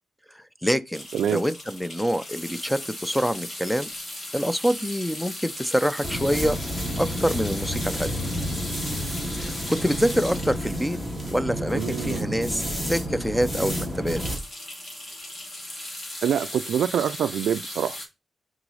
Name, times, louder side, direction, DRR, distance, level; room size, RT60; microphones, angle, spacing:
voice 1, 0.3-1.0 1.3-3.9 4.3-6.6 7.0-8.1 9.4-11.0 11.3-14.2, equal, ahead, 0.4 m, -26 dB
sound 1, 0.9-12.2 12.7-12.8 13.1-13.2 13.5-18.1, left 1 dB, 35° left, 1.9 m, -37 dB
voice 2, 1.1-1.4 11.7-12.4 16.2-18.0, right 9 dB, 85° right, 0.3 m, -25 dB
sound 2, 6.0-14.4, equal, 20° left, 1.7 m, -30 dB
6.0 x 3.9 x 5.4 m
wide cardioid pair, 155°, 0 cm